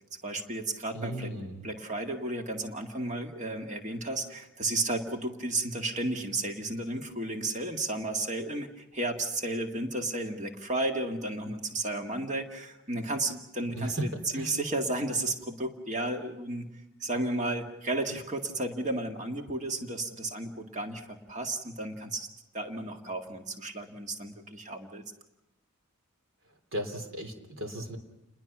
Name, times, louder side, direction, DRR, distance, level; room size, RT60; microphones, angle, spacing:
voice 1, 0.2-1.3 1.6-16.7 17.0-22.3 22.5-25.0, right 2 dB, 35° right, 3 dB, 1.9 m, -33 dB
voice 2, 0.9-1.6 13.8-14.1 14.3-14.5 26.7-28.0, right 1 dB, 60° right, 5 dB, 3.3 m, -35 dB
29.5 x 21.0 x 6.0 m, 0.94 s
head